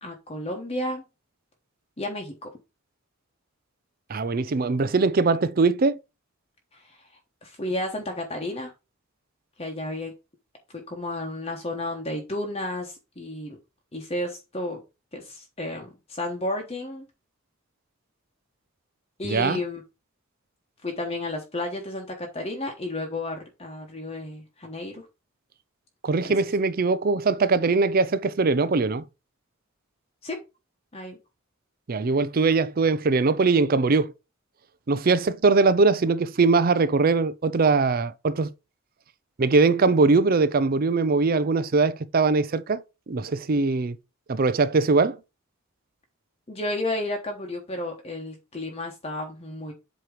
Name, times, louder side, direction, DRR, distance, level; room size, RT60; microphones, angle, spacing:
voice 1, 0.0-1.0 2.0-2.5 6.7-7.0 7.4-8.7 9.6-10.1 10.7-13.6 13.9-14.8 15.1-17.0 19.2-19.8 20.8-25.1 26.2-26.3 30.2-30.4 30.9-31.2 46.5-49.7, left 1 dB, 30° left, 1.1 m, -32 dB
voice 2, 4.1-6.0 19.2-19.6 26.0-29.0 31.9-34.1 34.9-38.5 39.4-44.0 44.3-45.2, right 4 dB, 45° right, 0.5 m, -21 dB
7.8 x 3.0 x 4.9 m
head